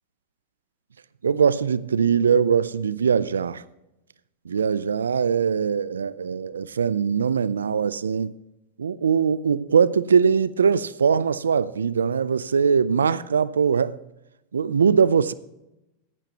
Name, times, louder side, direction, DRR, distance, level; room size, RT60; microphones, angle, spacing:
voice 1, 1.2-3.6 4.5-8.3 8.8-14.0 14.5-15.3, right 6 dB, 85° right, 0.4 m, -21 dB
14.5 x 10.5 x 2.9 m
hypercardioid pair, 100°, 0 cm